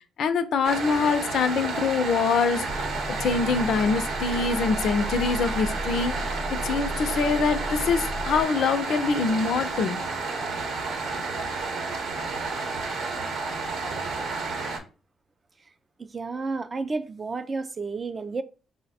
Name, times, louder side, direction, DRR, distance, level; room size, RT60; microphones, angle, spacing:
voice 1, 0.2-6.4 6.6-10.0, left 5 dB, 70° left, 0.4 m, -24 dB
sound 1, 0.6-14.8, right 3 dB, 75° right, 0.8 m, -31 dB
Motor vehicle (road) / Engine starting / Idling, 2.6-8.4, equal, 15° right, 0.7 m, -35 dB
voice 2, 16.0-18.4, right 3 dB, 30° right, 0.3 m, -31 dB
3.1 x 2.1 x 4.1 m
cardioid pair, 90°, 0 cm